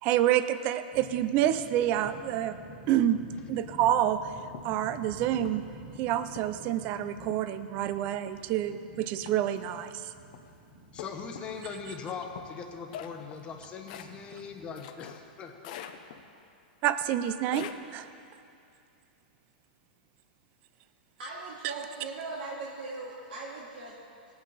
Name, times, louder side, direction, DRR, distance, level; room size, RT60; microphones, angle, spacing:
voice 1, 0.0-2.6 2.9-3.2 3.5-4.2 4.6-5.6 6.0-10.0 16.8-18.1 21.6-21.7, right 11 dB, 30° right, 12 dB, 0.5 m, -28 dB
sound 1, 0.9-14.7, right 1 dB, 55° right, 3.1 m, -50 dB
sound 2, 4.5-4.8 5.4-5.8 6.4-6.7 7.3-7.6 8.3-8.7 9.3-9.6 10.3-10.5 11.0-11.7 12.4-15.3 15.6-16.4 17.0-17.7, left 9 dB, 50° left, 0.7 m, -44 dB
voice 2, 10.9-15.8, left 5 dB, 20° left, 3 dB, 1.1 m, -40 dB
voice 3, 21.2-23.9, right 3 dB, 85° right, -6 dB, 2.1 m, -39 dB
18.5 x 8.6 x 4.2 m, 2.5 s
supercardioid pair, 160°, 5 cm